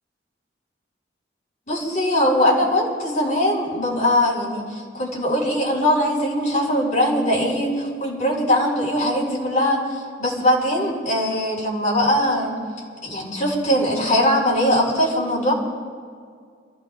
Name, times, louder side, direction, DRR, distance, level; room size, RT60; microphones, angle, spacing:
voice 1, 1.7-12.6 13.0-15.5, left 1 dB, 45° left, -4 dB, 4.7 m, -21 dB
30.0 x 15.0 x 2.5 m, 2.1 s
head